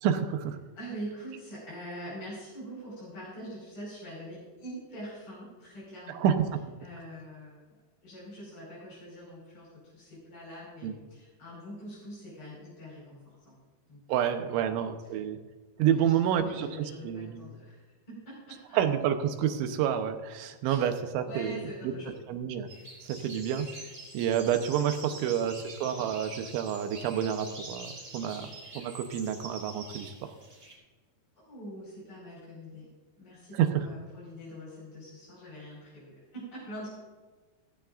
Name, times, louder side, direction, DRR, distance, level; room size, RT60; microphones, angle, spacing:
voice 1, 0.0-0.6 6.1-6.6 10.8-10.9 14.1-15.4 15.8-17.5 18.7-22.7 23.0-23.7 24.1-28.5 28.8-30.3 33.5-33.9, right 9 dB, 90° right, 7 dB, 3.4 m, -29 dB
voice 2, 0.8-6.3 6.8-7.6 8.0-13.5 13.9-14.8 15.9-17.8 18.1-18.8 20.6-20.9 21.3-22.1 25.4-25.6 25.9-26.0 31.5-32.9 33.2-36.9, equal, 30° left, -7 dB, 5.7 m, -44 dB
sound 1, 22.7-30.7, right 2 dB, 20° right, 4.9 m, -46 dB
16.5 x 15.5 x 2.6 m, 1.3 s
omnidirectional pair, 5.2 m